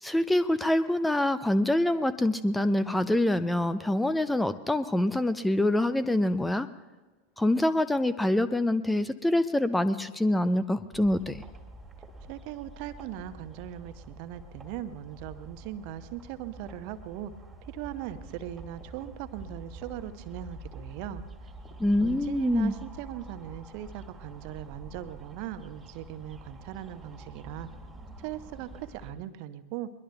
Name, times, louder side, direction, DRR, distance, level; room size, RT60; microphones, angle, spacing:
voice 1, 0.0-6.7 7.4-11.4 21.8-22.7, left 1 dB, 5° left, 15 dB, 0.4 m, -25 dB
sound 1, 10.9-29.1, right 2 dB, 15° right, 1.9 m, -47 dB
voice 2, 12.3-17.3 17.7-21.2 22.0-27.7 28.2-29.9, right 11 dB, 45° right, 11 dB, 0.8 m, -39 dB
22.5 x 21.5 x 2.3 m, 1.3 s
figure-of-eight pair, 90°, 0 cm